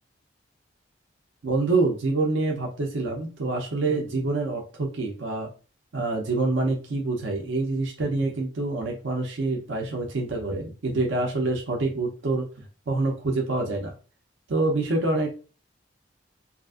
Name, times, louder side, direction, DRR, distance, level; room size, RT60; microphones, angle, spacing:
voice 1, 1.4-5.5 5.9-12.5 12.9-13.9 14.5-15.3, right 3 dB, 75° right, 1 dB, 0.6 m, -26 dB
2.8 x 2.5 x 2.4 m, 0.35 s
head